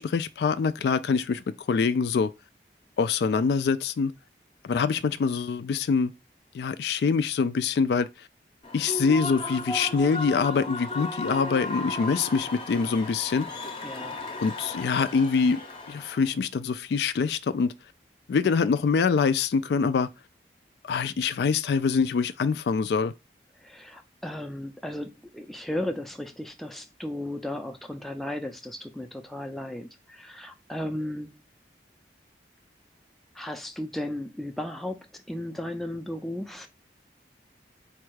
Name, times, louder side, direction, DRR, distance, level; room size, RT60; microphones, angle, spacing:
voice 1, 0.0-2.3 3.0-4.1 4.6-6.1 6.5-8.1 8.7-13.5 14.4-15.6 15.9-17.7 18.3-20.1 20.8-23.1, left 5 dB, 70° left, 0.3 m, -25 dB
Human voice / Cheering / Applause, 8.6-16.3, left 2 dB, 30° left, 0.7 m, -35 dB
voice 2, 13.8-14.2 23.6-31.4 33.3-36.7, left 1 dB, ahead, 0.4 m, -35 dB
4.3 x 2.3 x 4.6 m
head